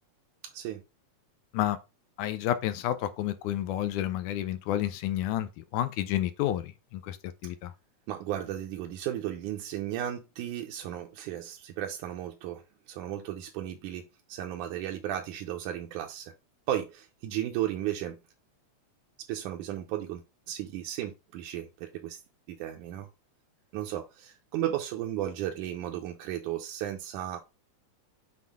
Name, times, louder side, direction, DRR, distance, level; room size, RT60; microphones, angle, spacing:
voice 1, 2.2-7.7, left 12 dB, 85° left, 2.1 m, -30 dB
voice 2, 8.1-16.3 16.7-18.2 19.3-22.2 22.5-23.1 23.7-27.4, right 12 dB, 85° right, 2.2 m, -35 dB
7.5 x 3.9 x 3.6 m
omnidirectional pair, 3.5 m